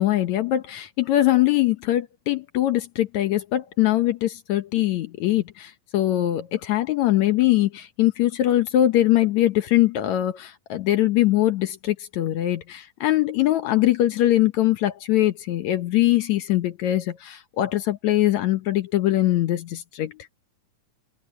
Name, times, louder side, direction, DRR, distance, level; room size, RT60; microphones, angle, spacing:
voice 1, 0.0-20.3, left 14 dB, 70° left, 2.0 m, -22 dB
omnidirectional pair, 3.9 m